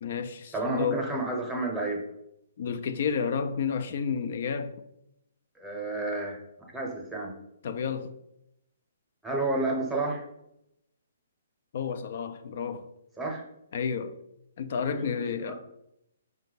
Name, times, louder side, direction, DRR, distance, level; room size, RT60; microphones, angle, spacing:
voice 1, 0.0-1.1 2.6-4.7 7.6-8.1 11.7-12.9 13.7-14.2 14.6-15.5, left 6 dB, 55° left, 0.3 m, -31 dB
voice 2, 0.5-2.0 5.6-7.3 9.2-10.2 13.2-13.4 14.8-15.5, right 2 dB, 5° right, 0.8 m, -31 dB
4.3 x 2.2 x 4.0 m
hypercardioid pair, 140°, 0 cm